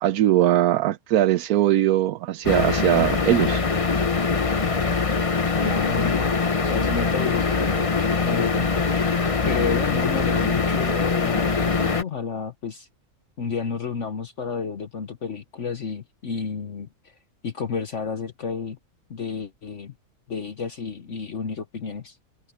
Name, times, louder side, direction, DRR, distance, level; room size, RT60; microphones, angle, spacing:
voice 1, 0.0-3.6, right 13 dB, 75° right, 1.1 m, -20 dB
sound 1, 2.4-12.0, left 4 dB, 25° left, 0.8 m, -23 dB
voice 2, 5.6-9.1 9.5-12.9 13.4-17.1 17.4-18.8 19.1-19.9 20.3-22.2, left 5 dB, 55° left, 1.3 m, -31 dB
omnidirectional pair, 1.6 m